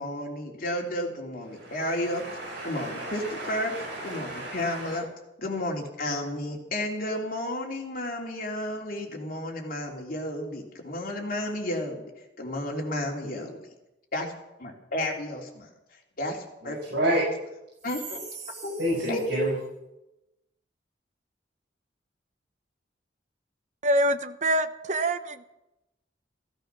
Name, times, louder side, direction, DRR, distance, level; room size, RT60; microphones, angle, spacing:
voice 1, 0.0-2.2 2.6-3.7 4.0-5.0 5.4-12.1 12.4-13.5 14.1-14.3 14.6-15.7 16.2-16.8 17.8-18.2 18.6-18.7 19.1-19.5, left 1 dB, 50° left, 0 dB, 3.3 m, -32 dB
voice 2, 1.5-5.0 16.6-17.3 18.5-19.6, right 1 dB, 60° right, -5 dB, 6.8 m, -31 dB
voice 3, 23.8-25.4, right 1 dB, 40° right, 10 dB, 1.0 m, -25 dB
15.5 x 14.0 x 6.2 m, 0.92 s
head